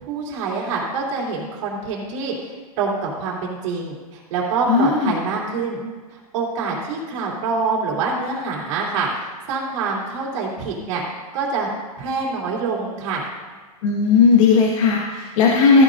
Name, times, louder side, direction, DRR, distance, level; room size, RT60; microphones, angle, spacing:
voice 1, 0.0-5.8 6.1-11.0 11.3-11.7 12.0-13.2, right 4 dB, 55° right, -2 dB, 3.1 m, -26 dB
voice 2, 4.7-5.1 13.8-15.8, left 5 dB, 60° left, -2 dB, 1.7 m, -16 dB
14.5 x 9.6 x 2.6 m, 1.4 s
hypercardioid pair, 145°, 19 cm